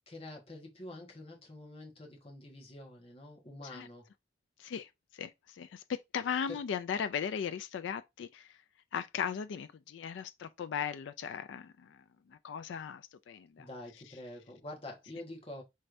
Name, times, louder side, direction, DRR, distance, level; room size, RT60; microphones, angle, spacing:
voice 1, 0.1-4.1 6.5-6.6 13.6-15.6, left 1 dB, 35° left, 1.3 m, -47 dB
voice 2, 4.6-8.5 8.9-12.0 12.3-13.7, left 7 dB, 85° left, 0.3 m, -37 dB
4.6 x 3.2 x 2.5 m
head